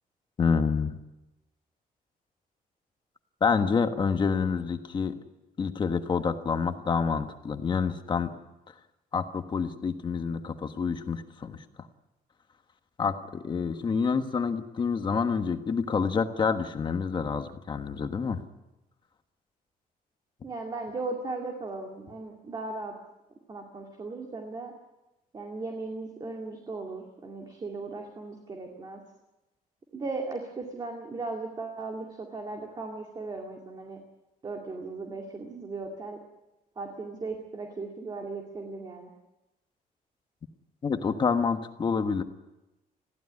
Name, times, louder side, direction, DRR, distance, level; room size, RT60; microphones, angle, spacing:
voice 1, 0.4-1.0 3.4-5.2 5.6-8.3 9.1-11.6 13.0-18.4 40.8-42.2, left 5 dB, 30° left, 7 dB, 1.4 m, -27 dB
voice 2, 20.4-22.9 23.5-24.7 25.3-29.0 29.9-34.0 34.4-36.2 36.8-39.1, right 3 dB, 25° right, 2 dB, 2.3 m, -37 dB
21.5 x 16.0 x 9.6 m, 0.99 s
cardioid pair, 175°, 16 cm